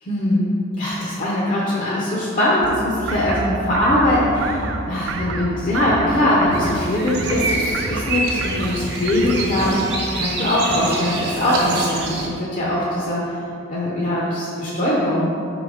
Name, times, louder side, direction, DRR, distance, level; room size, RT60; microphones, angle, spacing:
voice 1, 0.0-0.5 0.8-13.3 13.7-15.3, left 1 dB, 45° left, -5 dB, 0.7 m, -21 dB
sound 1, 2.6-9.7, right 3 dB, 80° right, 0.4 m, -30 dB
sound 2, 6.5-12.3, right 2 dB, 60° right, 1.0 m, -26 dB
5.2 x 3.9 x 4.7 m, 2.8 s
head